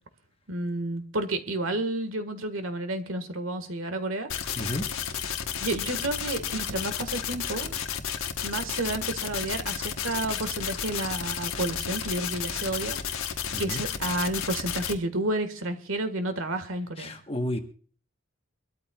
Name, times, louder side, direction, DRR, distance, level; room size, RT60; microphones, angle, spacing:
voice 1, 0.5-4.7 5.6-7.7 8.4-13.0 13.6-17.2, right 2 dB, 75° right, 9 dB, 1.7 m, -31 dB
sound 1, 4.3-14.9, left 8 dB, 85° left, 1.2 m, -32 dB
voice 2, 13.5-13.8 17.0-17.6, left 1 dB, 25° left, 6 dB, 1.2 m, -31 dB
24.0 x 13.0 x 2.4 m, 0.41 s
head